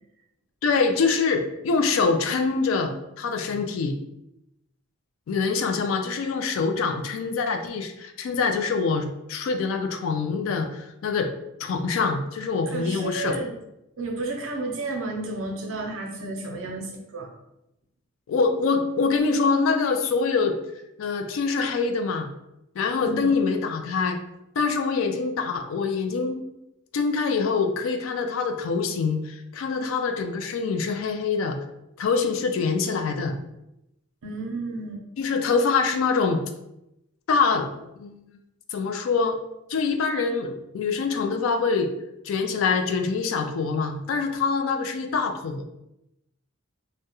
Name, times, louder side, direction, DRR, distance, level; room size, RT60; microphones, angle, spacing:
voice 1, 0.6-4.0 5.3-11.3 11.6-13.4 18.3-20.6 21.0-22.3 22.8-24.2 24.6-26.4 26.9-31.6 32.0-33.4 35.2-36.4 37.3-38.2 38.7-39.4 39.7-41.9 42.2-45.7, left 4 dB, 70° left, 6 dB, 0.3 m, -25 dB
voice 2, 12.7-13.5 14.0-17.3 23.0-23.3 34.2-35.0, right 2 dB, 70° right, 1 dB, 0.5 m, -32 dB
2.3 x 2.0 x 2.8 m, 0.87 s
head